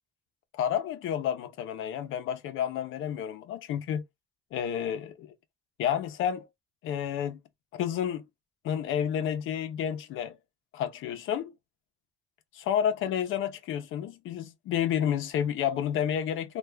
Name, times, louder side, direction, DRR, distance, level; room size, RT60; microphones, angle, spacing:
voice 1, 0.5-4.0 4.5-5.3 5.8-6.5 6.8-7.4 7.7-8.2 8.6-10.4 10.7-11.5 12.5-16.6, left 9 dB, 90° left, 0.6 m, -30 dB
3.3 x 2.3 x 3.2 m
cardioid pair, 90°, 20 cm